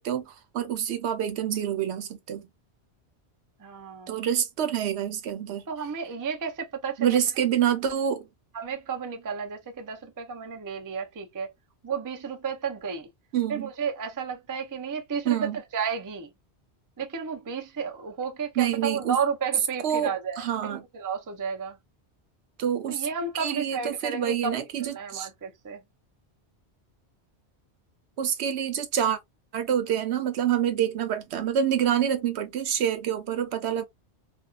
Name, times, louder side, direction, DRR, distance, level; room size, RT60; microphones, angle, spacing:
voice 1, 0.0-2.5 4.1-5.6 7.0-8.3 13.3-13.7 15.3-15.6 18.6-19.2 19.8-20.1 20.4-20.8 22.6-23.1 23.3-25.3 28.2-29.2 29.5-33.8, right 9 dB, 75° right, 0.9 m, -27 dB
voice 2, 3.6-4.1 5.7-7.2 8.5-11.5 11.8-13.1 13.5-15.4 15.7-16.3 17.0-21.8 22.9-24.5 24.8-25.8, right 6 dB, 30° right, 0.3 m, -32 dB
2.6 x 2.3 x 2.3 m
omnidirectional pair, 1.1 m